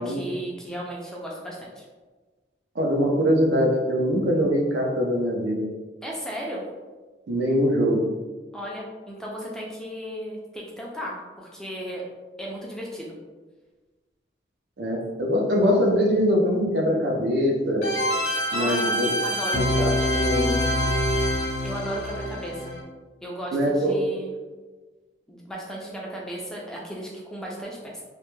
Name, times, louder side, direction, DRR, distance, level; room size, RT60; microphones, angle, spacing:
voice 1, 0.0-1.8 6.0-6.6 8.5-12.0 12.4-13.2 18.5-19.6 21.6-22.7 23.2-24.3 25.3-28.0, equal, 5° left, -3 dB, 0.3 m, -35 dB
voice 2, 2.8-5.7 7.3-8.0 14.8-17.9 18.5-19.1 19.5-20.7 23.5-24.0, equal, 70° right, 0 dB, 0.5 m, -23 dB
sound 1, 17.8-22.8, equal, 90° left, 0.5 m, -25 dB
2.1 x 2.1 x 3.0 m, 1.3 s
head